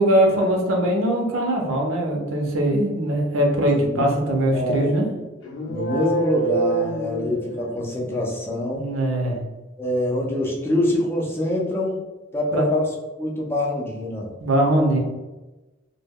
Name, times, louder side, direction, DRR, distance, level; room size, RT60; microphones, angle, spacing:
voice 1, 0.0-5.1 8.7-9.4 12.5-12.7 14.4-15.0, right 1 dB, 85° right, 0 dB, 0.6 m, -21 dB
voice 2, 4.5-4.9 5.7-8.9 9.8-12.0 12.3-14.3, left 1 dB, 10° left, -3 dB, 0.5 m, -25 dB
sound 1, 5.4-8.0, right 3 dB, 75° left, 0.6 m, -26 dB
2.2 x 2.1 x 3.4 m, 1.1 s
head